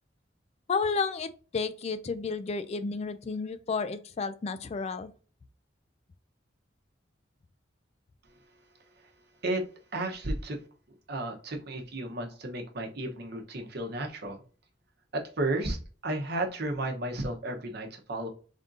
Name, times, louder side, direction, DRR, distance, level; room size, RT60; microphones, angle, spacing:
voice 1, 0.7-5.1, left 4 dB, 35° left, 0.3 m, -32 dB
voice 2, 9.9-10.6 11.1-14.4 15.1-18.3, right 2 dB, 55° right, 0.9 m, -33 dB
3.6 x 2.6 x 3.8 m
head